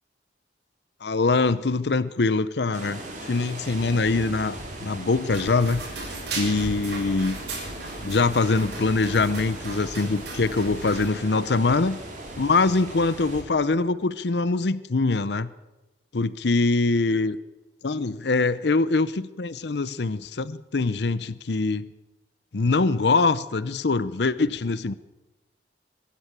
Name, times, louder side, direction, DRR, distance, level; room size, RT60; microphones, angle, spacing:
voice 1, 1.0-5.8 6.3-7.4 8.0-12.0 12.4-15.5 16.1-17.4 17.8-21.9 22.5-24.9, left 3 dB, 70° left, 16 dB, 0.7 m, -23 dB
sound 1, 2.7-13.4, right 1 dB, 45° right, 4.6 m, -39 dB
sound 2, 5.3-11.1, right 2 dB, 75° right, 7.3 m, -36 dB
23.0 x 13.0 x 8.9 m, 1.1 s
head